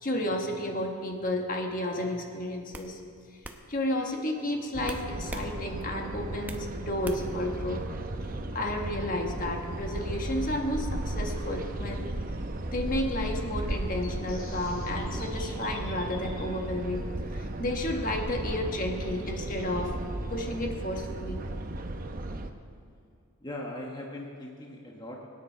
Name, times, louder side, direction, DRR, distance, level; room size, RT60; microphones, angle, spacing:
voice 1, 0.0-3.0 3.7-7.9 8.5-12.1 12.7-20.0 20.3-21.4, left 1 dB, 40° left, 2 dB, 1.4 m, -32 dB
sound 1, 1.9-2.1 2.7-2.9 3.4-3.6 4.8-5.5 5.9-6.7 7.0-7.4, right 1 dB, 10° right, 0.8 m, -40 dB
sound 2, 4.7-22.5, right 1 dB, 40° right, 0.8 m, -35 dB
sound 3, 13.7-16.5, left 4 dB, 70° left, 2.2 m, -49 dB
voice 2, 23.4-25.3, left 1 dB, 20° left, -1 dB, 1.2 m, -39 dB
23.0 x 9.8 x 4.5 m, 2.4 s
head